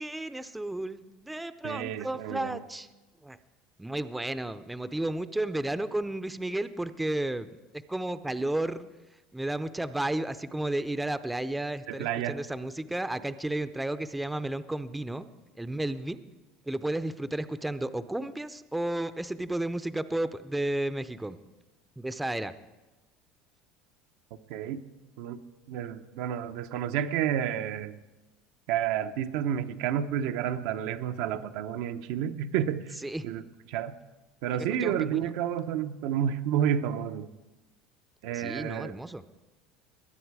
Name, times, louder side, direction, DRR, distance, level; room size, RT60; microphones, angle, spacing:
voice 1, 0.0-2.9 3.2-3.4 3.8-7.5 7.9-8.9 9.3-16.2 16.7-21.4 22.0-22.5 33.0-33.2 34.8-35.2 38.3-39.2, right 1 dB, 5° right, 12 dB, 0.5 m, -32 dB
voice 2, 1.6-2.6 11.9-12.4 24.5-24.8 25.2-25.4 25.7-28.0 28.7-33.0 33.2-33.4 33.7-33.9 34.4-37.3 38.2-38.9, right 9 dB, 75° right, 8 dB, 0.7 m, -30 dB
21.0 x 9.6 x 4.8 m, 1.1 s
supercardioid pair, 120°, 0 cm